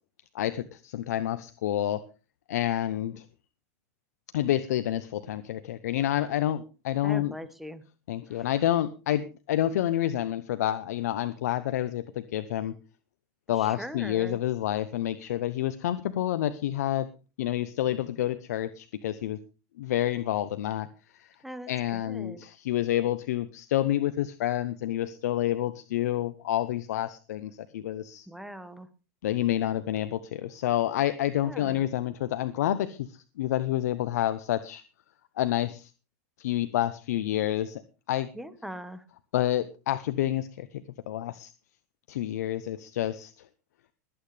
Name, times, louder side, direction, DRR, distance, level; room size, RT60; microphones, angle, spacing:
voice 1, 0.3-2.0 2.5-3.3 4.3-7.3 8.1-12.8 13.5-17.1 17.4-19.4 19.8-20.9 21.2-21.3 21.7-28.3 29.2-34.8 35.4-35.9 36.4-37.8 38.1-38.3 39.3-41.5 42.1-43.5, left 12 dB, 80° left, 13 dB, 0.8 m, -28 dB
voice 2, 7.0-7.8 8.3-8.5 13.5-14.4 21.4-22.4 28.3-28.9 31.4-31.8 38.3-39.0, equal, ahead, 11 dB, 1.4 m, -41 dB
21.5 x 8.9 x 3.3 m, 0.32 s
supercardioid pair, 115°, 9 cm